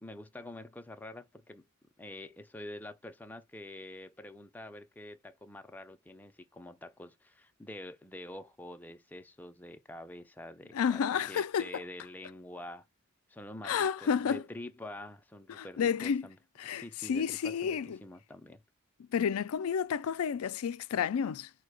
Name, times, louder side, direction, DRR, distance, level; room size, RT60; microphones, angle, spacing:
voice 1, 0.0-1.7 2.0-11.0 11.3-12.9 13.3-16.4 16.6-18.6, left 1 dB, 10° left, 0.4 m, -46 dB
voice 2, 10.7-11.8 13.6-14.4 15.5-16.3 16.6-18.0 19.1-21.5, left 7 dB, 80° left, 0.4 m, -31 dB
4.6 x 2.2 x 4.7 m
head